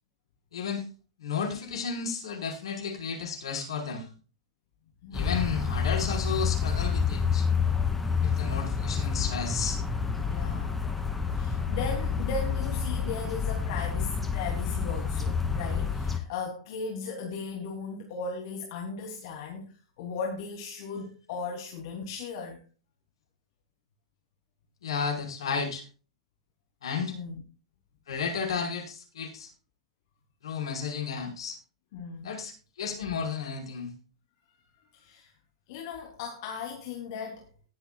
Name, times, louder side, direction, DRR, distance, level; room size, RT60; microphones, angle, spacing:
voice 1, 0.5-0.9 1.2-4.1 5.1-7.5 8.2-9.8 24.8-25.8 26.8-27.2 28.1-29.5 30.4-31.6 32.2-33.9, left 6 dB, 70° left, 5.1 m, -33 dB
voice 2, 5.0-5.4 10.2-10.9 11.3-22.6 27.1-27.4 31.9-32.3 34.8-35.3 35.7-37.5, left 4 dB, 55° left, 3.2 m, -37 dB
sound 1, 5.1-16.2, left 6 dB, 5° left, 2.6 m, -28 dB
20.0 x 8.1 x 2.4 m
figure-of-eight pair, 100°, 3 cm